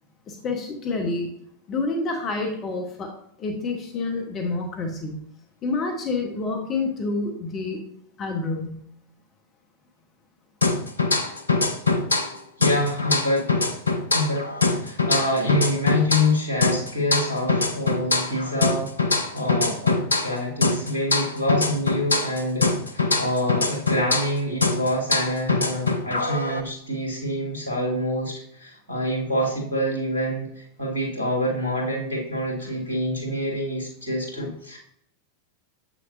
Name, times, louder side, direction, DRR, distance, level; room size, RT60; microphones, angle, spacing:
voice 1, 0.3-1.3 1.7-5.2 5.6-7.8 8.2-8.8, left 3 dB, 30° left, 3 dB, 1.1 m, -28 dB
sound 1, 10.6-12.3 12.6-16.3 16.6-20.4 20.6-24.3 24.6-26.6, left 3 dB, 80° left, 0.6 m, -23 dB
voice 2, 12.6-13.7 14.1-34.8, left 1 dB, 80° right, -3 dB, 2.1 m, -26 dB
7.6 x 6.1 x 2.6 m, 0.69 s
figure-of-eight pair, 90°, 0 cm